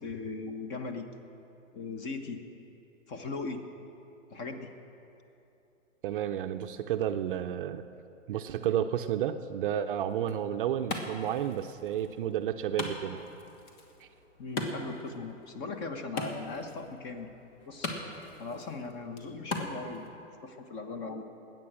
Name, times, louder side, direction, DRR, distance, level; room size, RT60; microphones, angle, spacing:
voice 1, 0.0-1.1 1.7-2.4 3.1-3.6 4.3-4.7 14.4-17.3 17.6-17.9 18.4-21.3, left 3 dB, 30° left, 7 dB, 1.2 m, -39 dB
voice 2, 6.0-7.8 8.3-13.2 14.0-14.1, right 10 dB, 45° right, 8 dB, 0.6 m, -31 dB
Wood, 10.1-20.1, left 2 dB, 65° left, 2.3 m, -41 dB
21.0 x 9.2 x 6.3 m, 2.8 s
hypercardioid pair, 125°, 39 cm